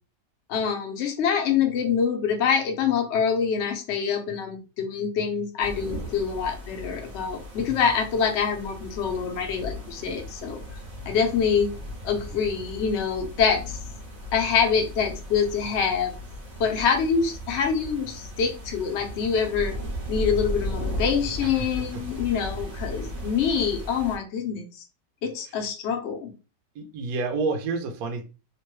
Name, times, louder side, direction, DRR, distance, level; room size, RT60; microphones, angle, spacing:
voice 1, 0.5-10.6 11.1-11.7 12.0-13.8 14.3-16.1 16.6-19.7 20.1-24.8 25.2-26.3, left 6 dB, 60° left, 0.7 m, -25 dB
sound 1, 5.6-24.2, equal, 50° right, 0.5 m, -36 dB
voice 2, 21.4-22.0 26.7-28.2, right 4 dB, 65° right, 0.9 m, -29 dB
3.0 x 2.2 x 3.0 m
omnidirectional pair, 1.9 m